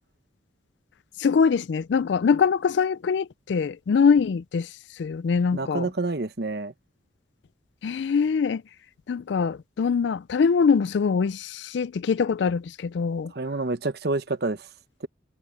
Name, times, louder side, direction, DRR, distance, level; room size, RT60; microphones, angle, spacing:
voice 1, 1.2-5.9 7.8-8.6 9.1-13.3, left 5 dB, 70° left, 0.4 m, -23 dB
voice 2, 5.5-6.7 13.3-14.7 15.0-15.1, right 3 dB, 55° right, 1.0 m, -28 dB
head